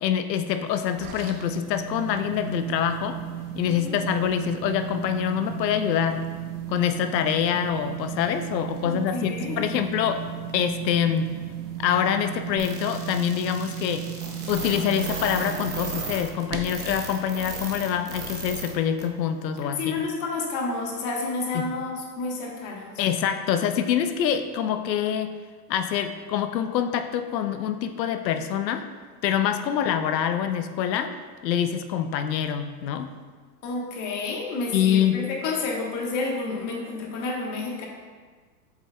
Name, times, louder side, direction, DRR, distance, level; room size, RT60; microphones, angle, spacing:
voice 1, 0.0-3.2 3.6-6.3 6.7-10.2 10.5-11.3 11.8-14.1 14.5-20.0 21.5-21.7 23.0-25.3 25.7-28.9 29.2-31.1 31.4-33.1 34.7-35.2, left 9 dB, 80° left, 9 dB, 0.7 m, -25 dB
sound 1, 0.7-17.0, right 10 dB, 60° right, 0.9 m, -35 dB
voice 2, 3.6-3.9 8.8-9.9 19.6-22.9 29.8-29.9 33.6-37.9, left 3 dB, 35° left, 0 dB, 1.2 m, -30 dB
sound 2, 12.6-18.7 19.0-19.1 19.6-19.7, right 3 dB, 20° right, 0.8 m, -35 dB
7.8 x 5.4 x 2.2 m, 1.5 s
hypercardioid pair, 120°, 50 cm